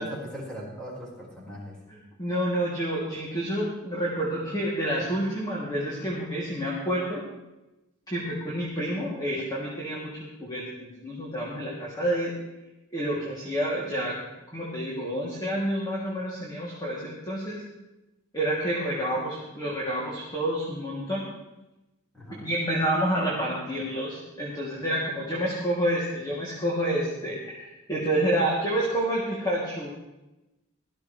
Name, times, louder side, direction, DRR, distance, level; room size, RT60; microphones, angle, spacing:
voice 1, 0.0-1.8 22.1-22.5, equal, 5° left, -5 dB, 4.8 m, -39 dB
voice 2, 1.9-7.2 8.1-12.3 12.9-14.1 14.5-17.6 18.3-21.3 22.4-29.9, right 1 dB, 20° left, -6 dB, 2.8 m, -29 dB
17.5 x 14.5 x 3.3 m, 0.98 s
head